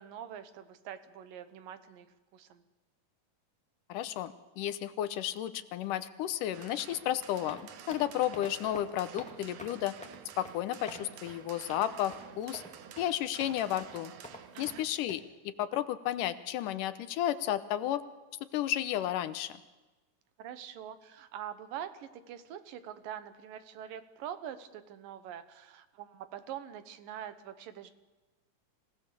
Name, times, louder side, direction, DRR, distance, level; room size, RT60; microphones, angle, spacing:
voice 1, 0.0-2.6 14.5-14.8 20.4-27.9, right 10 dB, 85° right, 11 dB, 2.9 m, -44 dB
voice 2, 3.9-7.6 7.9-10.0 10.4-12.6 13.0-14.1 14.6-18.0 18.5-19.6, left 12 dB, 80° left, 13 dB, 2.4 m, -33 dB
rain drops, 6.5-14.8, right 9 dB, 70° right, 2.3 m, -50 dB
sound 1, 7.2-15.2, equal, 5° left, 1.2 m, -49 dB
27.0 x 17.5 x 6.9 m, 1.2 s
omnidirectional pair, 3.8 m